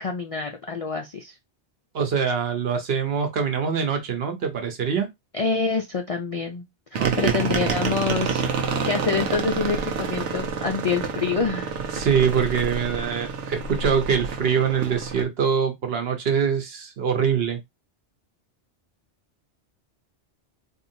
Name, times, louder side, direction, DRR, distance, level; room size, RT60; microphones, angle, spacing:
voice 1, 0.0-1.3 5.3-6.6 6.9-11.7, left 5 dB, 55° left, 0.4 m, -27 dB
voice 2, 1.9-5.1 7.0-7.3 11.9-17.6, right 7 dB, 65° right, 1.1 m, -24 dB
sound 1, 6.9-15.2, right 5 dB, 90° right, 1.1 m, -28 dB
4.1 x 2.7 x 2.6 m
omnidirectional pair, 1.2 m